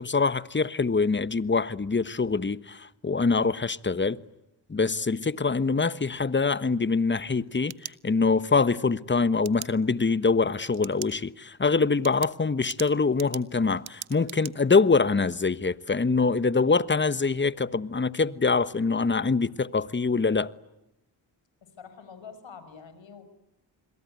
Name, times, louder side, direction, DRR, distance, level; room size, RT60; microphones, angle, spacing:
voice 1, 0.0-4.2 4.7-20.5, left 4 dB, 25° left, 1.2 m, -24 dB
sound 1, 7.3-8.5 9.4-9.7 10.7-11.2 11.5-11.6 12.0-14.5, right 13 dB, 75° right, 1.0 m, -41 dB
voice 2, 21.6-23.2, left 6 dB, 70° left, 5.6 m, -46 dB
28.0 x 22.5 x 9.5 m
supercardioid pair, 55°, 47 cm